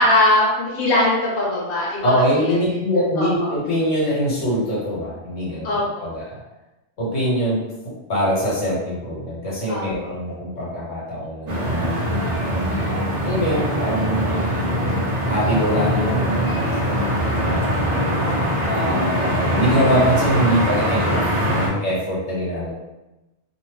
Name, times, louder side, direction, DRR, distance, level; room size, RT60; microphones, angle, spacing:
voice 1, 0.0-2.6 3.2-3.5 5.6-6.1 9.7-10.1 17.3-17.5, left 1 dB, 50° left, -5 dB, 0.9 m, -21 dB
voice 2, 2.0-6.2 7.0-7.6 8.1-12.0 13.2-14.5 15.3-16.5 16.8-17.9 18.6-21.3 21.6-22.7, equal, 80° left, -6 dB, 1.3 m, -23 dB
sound 1, 11.5-21.7, equal, 50° right, 0.5 m, -22 dB
2.7 x 2.0 x 3.1 m, 1.0 s
omnidirectional pair, 1.3 m